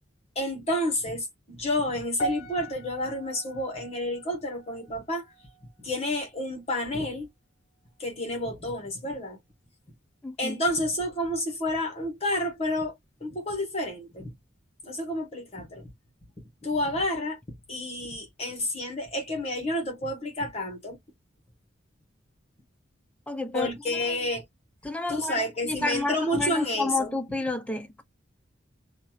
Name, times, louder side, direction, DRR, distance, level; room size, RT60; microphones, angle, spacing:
voice 1, 0.3-5.2 5.8-7.3 8.0-9.4 10.4-12.9 13.2-14.3 14.9-15.9 16.6-17.4 17.7-21.0 23.5-24.4 25.1-27.2, left 1 dB, 35° left, 1.1 m, -30 dB
sound 1, 2.2-6.6 6.8-7.2 7.9-8.0, right 1 dB, 70° left, 0.6 m, -39 dB
voice 2, 10.2-10.6 23.3-24.3 24.8-28.0, left 2 dB, 5° left, 0.4 m, -31 dB
2.7 x 2.3 x 2.8 m
head